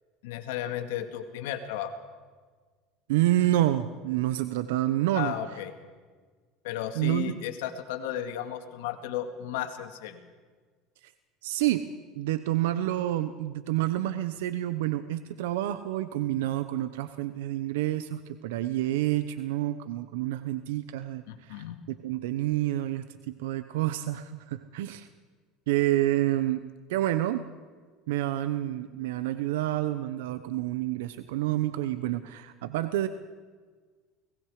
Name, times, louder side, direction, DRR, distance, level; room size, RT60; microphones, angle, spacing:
voice 1, 0.2-1.9 5.1-5.7 6.6-10.2 21.3-21.8, left 11 dB, 85° left, 7 dB, 2.1 m, -34 dB
voice 2, 3.1-5.3 6.9-7.3 11.0-11.1 11.4-11.9 12.2-21.6 22.0-25.1 25.7-26.6 26.9-27.5 28.1-33.1, right 14 dB, 90° right, 11 dB, 0.9 m, -28 dB
29.5 x 19.5 x 5.0 m, 1.5 s
supercardioid pair, 115°, 0 cm